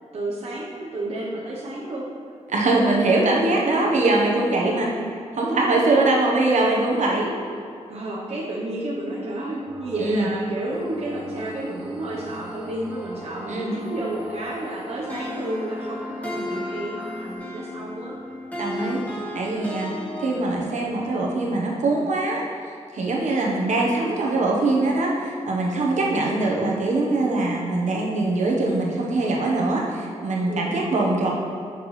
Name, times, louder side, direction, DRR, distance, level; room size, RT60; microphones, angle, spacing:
voice 1, 0.1-2.1 2.9-3.1 3.5-4.0 7.6-7.7 7.9-18.3 19.8-20.0 30.5-30.8, right 1 dB, 60° right, -5 dB, 0.9 m, -31 dB
voice 2, 2.5-4.9 5.3-7.3 10.0-10.3 13.5-13.7 18.6-19.0 19.3-19.9 20.2-22.4 22.9-31.3, right 2 dB, 75° right, -2 dB, 1.2 m, -22 dB
sound 1, 9.7-17.4, left 1 dB, 10° right, 1.1 m, -39 dB
sound 2, 15.1-20.9, left 1 dB, 10° left, 1.4 m, -34 dB
10.0 x 6.0 x 3.2 m, 2.3 s
wide cardioid pair, 175°, 12 cm